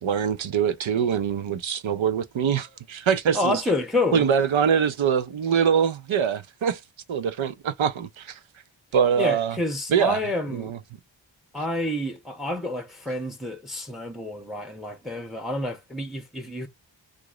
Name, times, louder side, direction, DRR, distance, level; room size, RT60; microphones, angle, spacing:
voice 1, 0.0-3.6 4.1-6.8 7.1-8.4 8.9-9.6 9.9-10.2 10.5-10.8, right 7 dB, 85° right, 0.7 m, -23 dB
voice 2, 3.3-4.3 9.2-10.7 11.5-16.7, left 2 dB, ahead, 1.0 m, -28 dB
2.9 x 2.6 x 3.7 m
cardioid pair, 50°, 46 cm